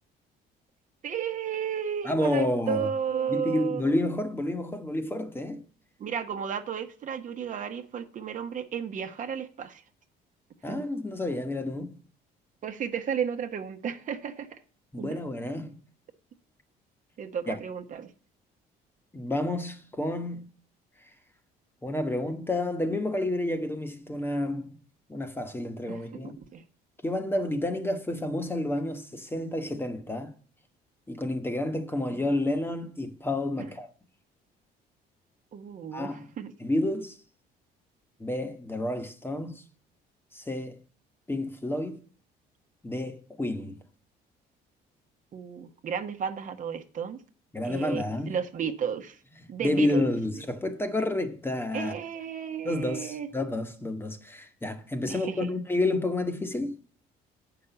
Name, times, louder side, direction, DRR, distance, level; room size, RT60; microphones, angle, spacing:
voice 1, 1.0-3.8 6.0-9.8 10.7-10.8 12.6-14.5 15.0-15.2 17.2-18.1 25.9-26.6 32.1-32.2 35.5-36.5 45.3-47.2 47.6-49.2 49.5-50.0 51.7-53.3 55.1-55.5, right 7 dB, 50° right, 1.1 m, -33 dB
voice 2, 2.0-2.9 3.3-5.6 10.6-11.9 14.9-15.7 17.5-17.6 19.1-20.5 21.8-24.7 25.1-26.3 27.0-30.3 31.1-33.9 35.9-36.3 36.6-37.2 38.2-39.6 40.3-40.8 41.3-42.0 42.8-43.8 47.5-48.3 49.6-51.9 52.6-56.8, left 1 dB, 15° left, 1.2 m, -30 dB
8.4 x 6.0 x 6.8 m
cardioid pair, 110°, 17 cm